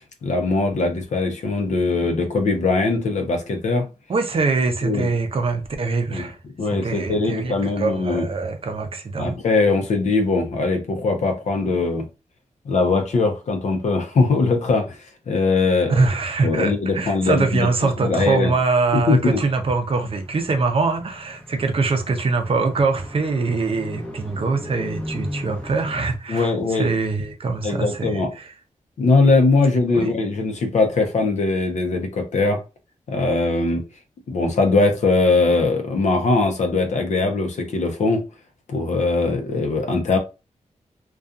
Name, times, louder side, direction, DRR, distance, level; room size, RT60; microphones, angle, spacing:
voice 1, 0.2-3.9 4.8-5.1 6.1-6.2 6.6-8.3 9.2-12.1 12.7-15.0 15.3-16.0 16.4-17.7 18.0-18.5 18.9-19.4 26.3-26.9 27.6-28.3 29.0-32.6 33.1-33.8 34.3-38.2 38.7-40.2, left 3 dB, 70° left, 0.6 m, -20 dB
voice 2, 4.1-6.4 6.7-9.4 15.9-28.5 29.9-30.1, right 4 dB, 50° right, 0.5 m, -23 dB
Car, 19.3-26.2, left 1 dB, 10° left, 0.6 m, -37 dB
2.6 x 2.3 x 2.3 m
wide cardioid pair, 95°, 13 cm